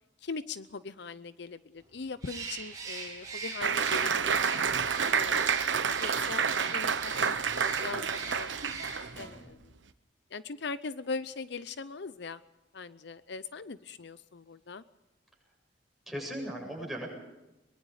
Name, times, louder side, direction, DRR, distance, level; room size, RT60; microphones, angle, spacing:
voice 1, 0.2-4.6 5.1-8.5 9.2-9.7 10.3-12.4 12.7-14.8, left 4 dB, 65° left, 14 dB, 0.7 m, -40 dB
Bird, 2.2-9.3, right 3 dB, 20° right, 6.5 m, -41 dB
Applause, 3.6-9.3, right 6 dB, 85° right, 1.1 m, -29 dB
voice 2, 9.1-9.4 16.1-17.1, equal, ahead, -2 dB, 7.9 m, -39 dB
23.0 x 23.0 x 4.9 m, 1.0 s
head